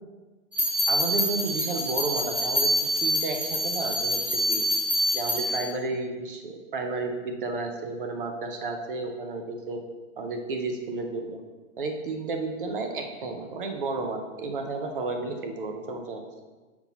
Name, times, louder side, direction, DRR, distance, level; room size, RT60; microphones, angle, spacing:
sound 1, 0.5-5.6, equal, 5° right, 0.8 m, -26 dB
voice 1, 0.9-2.7 3.0-4.7 5.1-9.8 10.2-11.4 11.8-16.2, right 3 dB, 40° right, 4 dB, 0.6 m, -32 dB
5.7 x 4.4 x 4.0 m, 1.3 s
hypercardioid pair, 170°, 41 cm